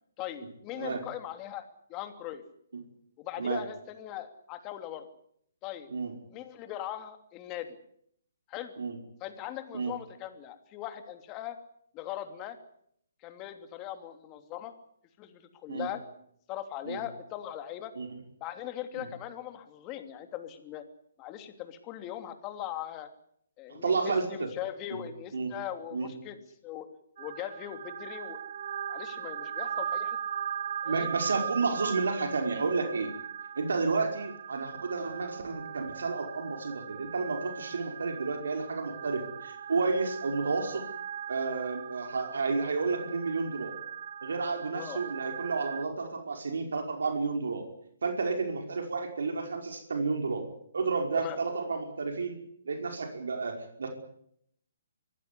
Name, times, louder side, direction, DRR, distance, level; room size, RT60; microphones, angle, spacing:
voice 1, 0.2-1.6 1.9-2.4 3.2-5.1 5.6-5.9 6.3-7.8 8.5-8.7 9.2-11.6 11.9-12.6 13.2-14.7 15.2-16.0 16.5-17.9 18.4-20.8 21.2-23.1 23.6-26.9 27.2-28.4 28.9-30.2 30.8-31.1 31.7-31.8 44.7-45.0 51.2-51.4, left 12 dB, 25° left, 8 dB, 3.0 m, -40 dB
voice 2, 23.7-24.5 24.9-25.0 25.3-25.5 25.9-26.1 30.8-33.1 33.6-40.8 41.3-43.8 44.2-47.6 48.0-50.4 50.7-52.4 52.7-53.9, right 4 dB, 80° right, 4 dB, 5.2 m, -31 dB
sound 1, 27.2-45.8, right 9 dB, 55° right, 1.7 m, -39 dB
25.0 x 16.0 x 9.8 m, 0.70 s
hypercardioid pair, 150°, 0 cm